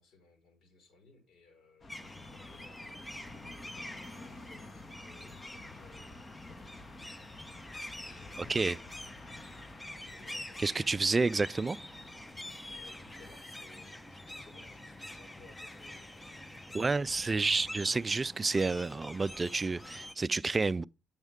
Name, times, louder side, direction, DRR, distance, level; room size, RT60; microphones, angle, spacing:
voice 1, 0.0-3.4 3.7-6.9 8.0-8.9 10.1-11.3 12.7-17.1, left 3 dB, 65° left, 5.0 m, -61 dB
sound 1, 1.8-13.4, left 2 dB, 35° left, 1.5 m, -52 dB
sound 2, 1.9-20.1, left 1 dB, 10° left, 0.9 m, -46 dB
voice 2, 10.6-11.8 16.7-20.8, right 3 dB, 25° right, 0.4 m, -30 dB
9.2 x 7.3 x 3.6 m
cardioid pair, 90°, 0 cm